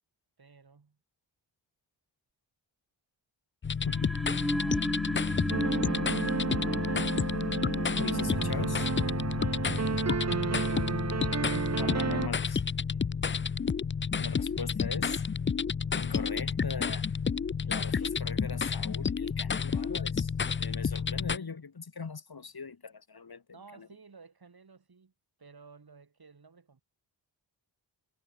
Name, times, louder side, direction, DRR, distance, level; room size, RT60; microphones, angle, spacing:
voice 1, 0.4-1.0 4.5-5.9 12.9-13.4 17.6-18.0 23.5-25.1 25.4-26.8, right 4 dB, 50° right, 7.0 m, -57 dB
sound 1, 3.6-21.4, left 6 dB, 25° left, 0.5 m, -31 dB
sound 2, 3.8-10.7, equal, ahead, 0.8 m, -36 dB
sound 3, 5.5-12.3, right 6 dB, 35° right, 0.9 m, -32 dB
voice 2, 8.0-8.9 11.8-12.6 14.1-15.2 15.9-17.1 17.7-20.3 20.6-23.4 23.8-23.9, left 5 dB, 55° left, 4.4 m, -40 dB
cardioid pair, 55°, 46 cm